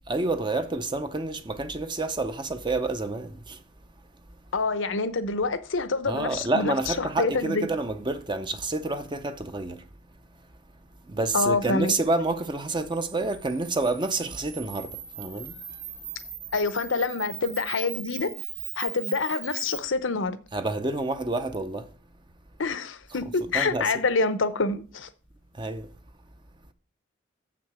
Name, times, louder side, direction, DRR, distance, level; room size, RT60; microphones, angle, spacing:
voice 1, 0.1-3.6 4.3-4.4 6.1-9.8 11.1-15.8 20.5-21.9 23.1-23.9 25.5-25.9, right 2 dB, 25° right, 0.6 m, -29 dB
voice 2, 4.5-7.7 11.3-11.9 16.5-18.3 18.8-20.4 22.6-25.1, left 3 dB, 70° left, 0.8 m, -27 dB
Camera, 12.8-19.8, right 9 dB, 70° right, 2.5 m, -39 dB
7.3 x 6.0 x 6.1 m
head